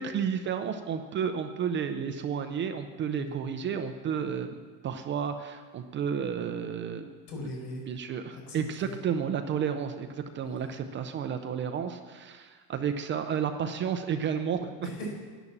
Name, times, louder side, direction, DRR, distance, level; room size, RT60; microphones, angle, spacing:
voice 1, 0.0-4.6 4.8-7.1 7.4-7.5 7.9-14.9, right 7 dB, 25° right, 7 dB, 0.4 m, -32 dB
voice 2, 7.3-7.8 8.3-8.6 8.8-9.0 10.4-10.7 14.8-15.1, left 1 dB, 85° left, -1 dB, 5.0 m, -39 dB
11.0 x 10.0 x 7.2 m, 1.5 s
cardioid pair, 150°, 49 cm